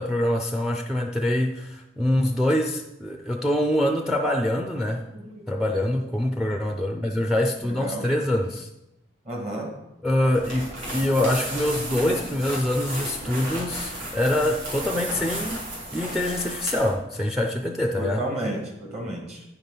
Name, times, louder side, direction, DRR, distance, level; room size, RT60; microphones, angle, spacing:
voice 1, 0.0-5.0 5.5-8.7 10.0-18.2, left 1 dB, 5° right, 4 dB, 0.5 m, -25 dB
voice 2, 4.8-5.6 6.5-6.6 7.1-7.3 7.6-8.0 9.2-9.7 18.0-19.4, right 1 dB, 35° right, 1 dB, 1.6 m, -33 dB
sound 1, 10.3-17.0, right 1 dB, 85° right, 3.6 m, -33 dB
9.5 x 5.7 x 5.5 m, 0.92 s
head